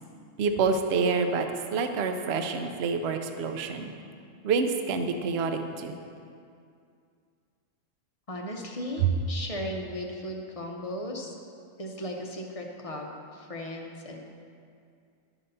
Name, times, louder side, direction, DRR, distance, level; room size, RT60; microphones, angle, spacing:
voice 1, 0.4-3.9 4.4-6.0 9.0-9.1, right 5 dB, 60° right, 6 dB, 0.8 m, -27 dB
voice 2, 8.3-11.4 11.8-14.2, equal, 35° left, 1 dB, 0.6 m, -36 dB
12.0 x 4.0 x 5.4 m, 2.4 s
omnidirectional pair, 1.3 m